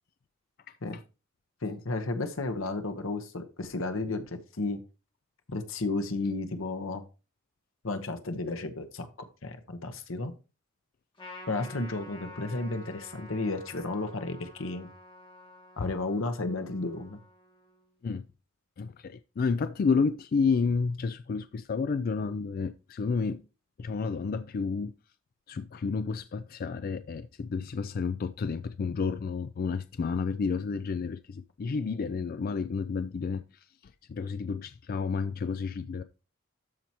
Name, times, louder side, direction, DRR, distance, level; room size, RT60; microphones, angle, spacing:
voice 1, 1.6-4.8 5.5-7.0 7.8-9.1 9.4-10.3 11.5-14.9 15.8-17.2, left 2 dB, 80° left, 1.1 m, -33 dB
Trumpet, 11.2-17.9, left 1 dB, 25° left, 2.2 m, -50 dB
voice 2, 18.8-23.4 23.8-24.9 25.5-36.0, left 5 dB, 45° left, 0.3 m, -31 dB
13.0 x 4.6 x 2.9 m
head